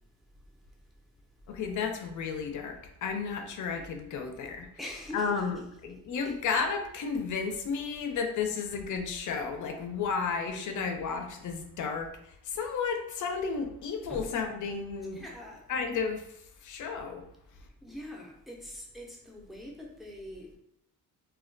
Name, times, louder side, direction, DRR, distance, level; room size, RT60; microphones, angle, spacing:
voice 1, 1.5-15.3 15.7-16.3 16.6-17.2, left 5 dB, 60° left, 0.5 m, -33 dB
voice 2, 4.8-5.4 6.2-6.4 14.1-14.3 15.1-15.6 17.8-20.6, left 1 dB, ahead, 0.5 m, -43 dB
2.2 x 2.2 x 2.5 m
cardioid pair, 105°, 34 cm